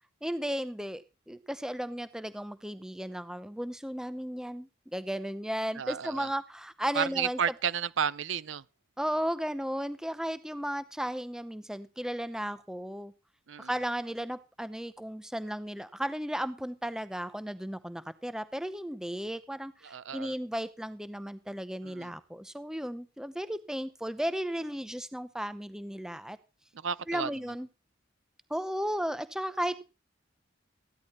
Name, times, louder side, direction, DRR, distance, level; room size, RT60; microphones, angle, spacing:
voice 1, 0.2-7.4 9.0-13.1 13.6-26.4 27.1-27.7 28.5-29.8, equal, 5° right, 0.7 m, -35 dB
voice 2, 5.8-6.3 6.9-8.6 13.5-13.7 19.8-20.3 21.8-22.1 26.7-27.3, right 7 dB, 75° right, 0.5 m, -32 dB
15.0 x 11.0 x 4.3 m
head